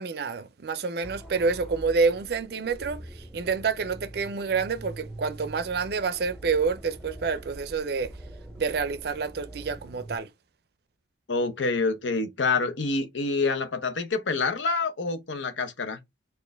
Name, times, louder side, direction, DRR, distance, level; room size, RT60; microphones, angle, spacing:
voice 1, 0.0-8.1 8.6-10.3, right 5 dB, 55° right, 0.4 m, -28 dB
sound 1, 1.0-10.2, right 1 dB, ahead, 0.5 m, -44 dB
voice 2, 11.3-16.0, left 3 dB, 80° left, 0.8 m, -27 dB
4.3 x 2.5 x 3.3 m
head